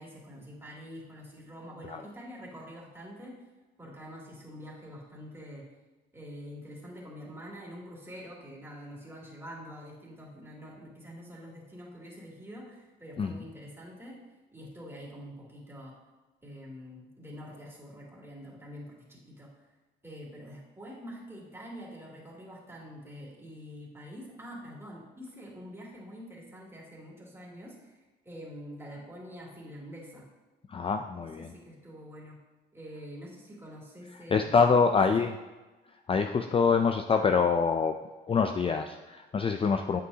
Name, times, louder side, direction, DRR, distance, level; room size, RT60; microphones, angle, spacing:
voice 1, 0.0-3.4 3.8-5.7 6.1-14.1 14.5-16.0 16.4-19.5 20.0-28.0 28.2-30.3 31.4-32.4 32.7-34.6 34.9-35.0, equal, 10° right, -4 dB, 2.7 m, -46 dB
voice 2, 30.7-31.5 34.3-35.3 36.1-38.0 38.3-40.0, left 5 dB, 30° left, 6 dB, 0.4 m, -25 dB
8.2 x 7.8 x 2.8 m, 1.2 s
cardioid pair, 90°, 20 cm